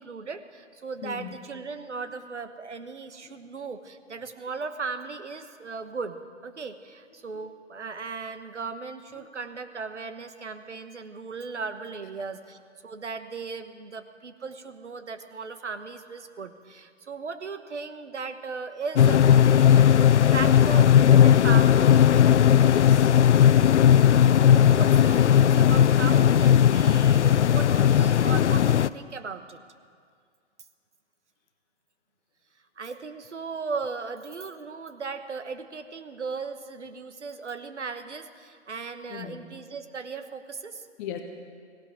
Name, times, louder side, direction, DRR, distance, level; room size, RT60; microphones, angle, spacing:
voice 1, 0.0-21.9 24.3-29.6 32.8-40.9, right 4 dB, 75° right, 10 dB, 1.2 m, -37 dB
voice 2, 1.0-1.3 22.7-23.1 39.1-39.4 41.0-41.2, left 9 dB, 15° left, 5 dB, 0.5 m, -36 dB
sound 1, 19.0-28.9, left 9 dB, 75° left, 0.5 m, -17 dB
17.5 x 16.5 x 4.9 m, 2.1 s
figure-of-eight pair, 125°, 36 cm